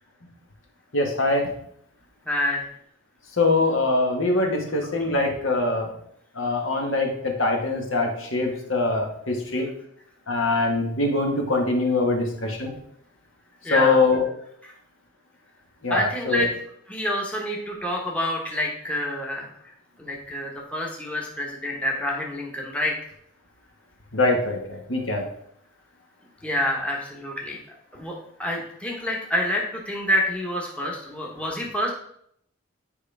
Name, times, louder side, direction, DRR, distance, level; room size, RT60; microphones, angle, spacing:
voice 1, 0.9-1.5 3.4-5.9 6.3-9.7 10.3-12.7 13.7-14.2 15.8-16.5 24.1-25.2, left 2 dB, 60° left, 2 dB, 1.5 m, -23 dB
voice 2, 2.2-2.7 4.8-4.9 13.6-14.0 14.6-14.7 15.9-16.5 16.9-22.9 26.4-27.6 27.9-28.1 28.4-31.9, left 1 dB, 5° left, -2 dB, 1.1 m, -27 dB
9.4 x 5.1 x 3.4 m, 0.69 s
head